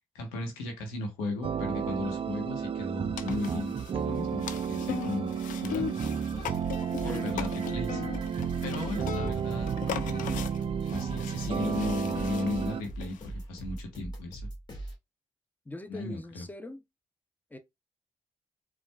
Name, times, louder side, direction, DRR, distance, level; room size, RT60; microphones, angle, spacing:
voice 1, 0.1-5.4 5.6-6.1 7.0-8.0 8.6-9.7 10.0-10.4 10.9-14.5 15.9-16.4, left 2 dB, 85° left, 1.1 m, -36 dB
sound 1, 1.4-12.8, right 7 dB, 40° right, 0.4 m, -32 dB
sound 2, 3.1-13.3, left 9 dB, 65° left, 0.5 m, -40 dB
sound 3, 6.3-14.9, right 1 dB, 30° left, 1.8 m, -41 dB
voice 2, 6.8-7.4 15.7-16.8 17.5-17.6, left 2 dB, 10° left, 0.7 m, -42 dB
4.4 x 2.4 x 2.3 m
hypercardioid pair, 40°, 15 cm